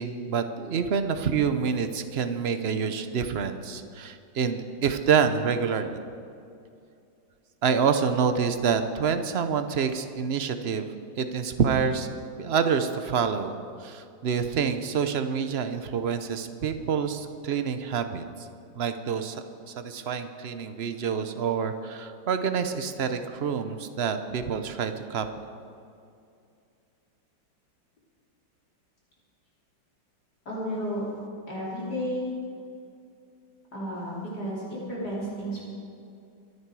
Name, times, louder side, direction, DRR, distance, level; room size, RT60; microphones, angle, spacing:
voice 1, 0.0-6.0 7.6-10.9 11.2-12.1 12.4-18.2 18.8-25.3, right 6 dB, 60° right, 9 dB, 0.6 m, -27 dB
voice 2, 30.5-31.1 31.5-32.3 33.7-35.6, equal, 55° left, -7 dB, 4.1 m, -32 dB
24.5 x 9.7 x 4.8 m, 2.5 s
omnidirectional pair, 2.0 m